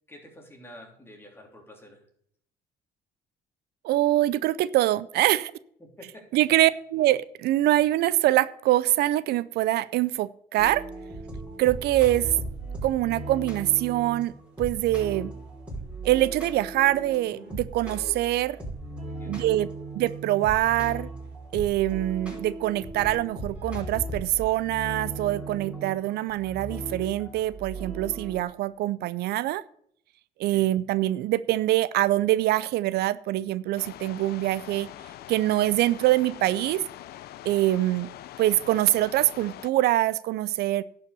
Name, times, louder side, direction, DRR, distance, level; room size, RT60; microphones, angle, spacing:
voice 1, 0.1-2.0 5.8-6.6 19.1-19.6 30.5-30.7, left 1 dB, 15° left, 1 dB, 3.1 m, -49 dB
voice 2, 3.8-5.5 6.3-10.8 11.6-12.3 12.8-14.3 14.6-15.3 16.0-18.6 19.3-19.7 19.9-21.1 21.5-29.6 30.4-34.9 35.3-36.8 37.4-38.1 38.4-40.8, right 15 dB, 75° right, 17 dB, 0.5 m, -24 dB
sound 1, 10.6-28.4, right 2 dB, 5° right, 5.4 m, -37 dB
sound 2, 33.8-39.7, left 13 dB, 65° left, 0.6 m, -43 dB
11.0 x 5.7 x 6.7 m, 0.64 s
cardioid pair, 110°, 17 cm